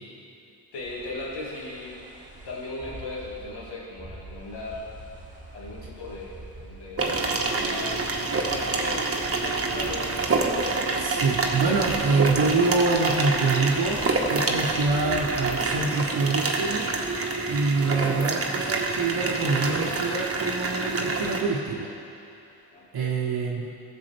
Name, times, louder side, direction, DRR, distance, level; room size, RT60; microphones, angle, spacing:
voice 1, 0.7-2.0 2.4-4.9 5.5-8.1 8.3-10.2 22.7-23.1, left 2 dB, 80° left, -4 dB, 2.0 m, -37 dB
sound 1, 0.7-15.9, right 2 dB, 20° right, 2.2 m, -45 dB
sound 2, 7.0-21.4, right 3 dB, 35° right, 1.3 m, -27 dB
voice 2, 11.0-16.9 17.5-21.9 22.9-23.7, right 3 dB, 65° right, -1 dB, 1.0 m, -25 dB
15.0 x 7.1 x 3.4 m, 2.8 s
cardioid pair, 60°, 41 cm